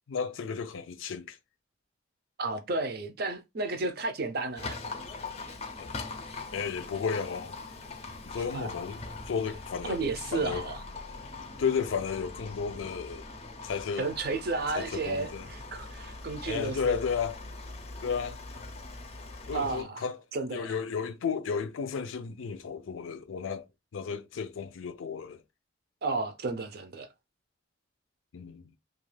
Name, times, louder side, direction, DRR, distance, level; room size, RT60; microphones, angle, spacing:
voice 1, 0.1-1.4 5.8-5.9 6.5-7.6 8.3-10.0 10.3-10.6 11.6-13.3 13.6-14.1 14.7-15.5 16.4-17.4 18.0-18.4 19.5-20.2 20.5-23.7 23.9-25.4 28.3-28.7, left 6 dB, 85° left, 0.4 m, -33 dB
voice 2, 2.4-4.8 8.3-8.7 9.8-10.8 14.0-17.0 19.5-20.0 20.3-20.7 26.0-27.1, right 3 dB, 50° right, 0.5 m, -32 dB
Livestock farm animals working animals, 4.6-19.8, left 3 dB, 30° left, 0.5 m, -42 dB
2.3 x 2.3 x 3.2 m
head